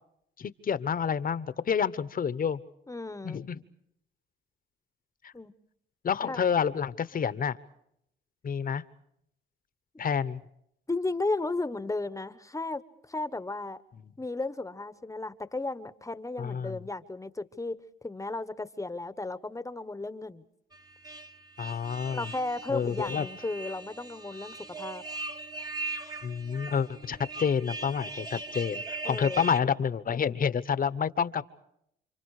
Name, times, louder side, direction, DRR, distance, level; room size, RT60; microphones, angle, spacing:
voice 1, 0.4-2.6 3.2-3.6 5.2-5.3 6.0-7.6 8.4-8.8 10.0-10.4 16.4-16.8 21.6-22.3 22.7-23.2 26.2-31.4, left 7 dB, 45° left, 15 dB, 1.1 m, -29 dB
voice 2, 2.9-3.4 5.3-5.5 6.3-6.4 9.9-10.1 10.9-13.8 14.2-17.8 18.0-20.4 22.1-25.0 29.0-29.4, left 2 dB, 15° left, 13 dB, 1.1 m, -34 dB
sound 1, 20.7-29.6, right 3 dB, 20° right, 1.3 m, -40 dB
30.0 x 26.5 x 4.9 m, 0.76 s
cardioid pair, 90°, 20 cm